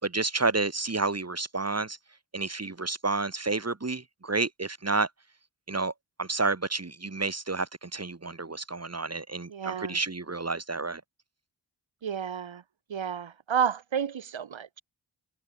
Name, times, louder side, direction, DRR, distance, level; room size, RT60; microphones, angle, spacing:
voice 1, 0.0-2.0 2.3-5.1 5.7-5.9 6.2-11.0, right 3 dB, 35° right, 2.9 m, -30 dB
voice 2, 9.5-10.0 12.0-12.6 12.9-14.8, right 8 dB, 80° right, 1.7 m, -31 dB
cardioid pair, 50°, 46 cm